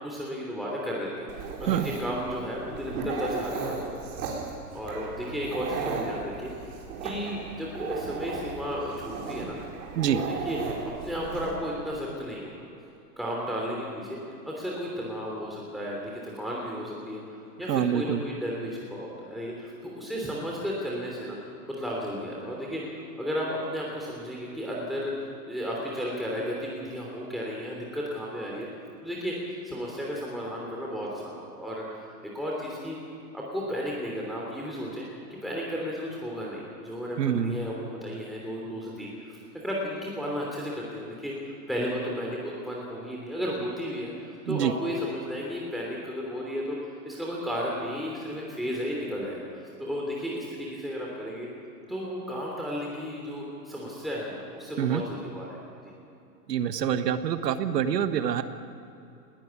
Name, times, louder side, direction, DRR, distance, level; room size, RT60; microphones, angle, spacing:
voice 1, 0.0-4.2 4.7-9.6 10.1-12.5 13.2-14.2 14.4-21.4 21.7-25.1 25.5-28.7 29.0-29.3 29.6-32.1 32.3-33.0 33.3-35.0 35.3-46.8 47.0-51.5 51.9-55.9, equal, ahead, -4 dB, 3.1 m, -34 dB
Dog, 1.3-11.5, right 4 dB, 60° right, 4.8 m, -36 dB
voice 2, 17.7-18.2 37.2-37.6 44.5-44.7 54.8-55.0 56.5-58.4, right 9 dB, 80° right, 11 dB, 1.4 m, -26 dB
19.5 x 13.5 x 9.7 m, 2.8 s
hypercardioid pair, 130°, 48 cm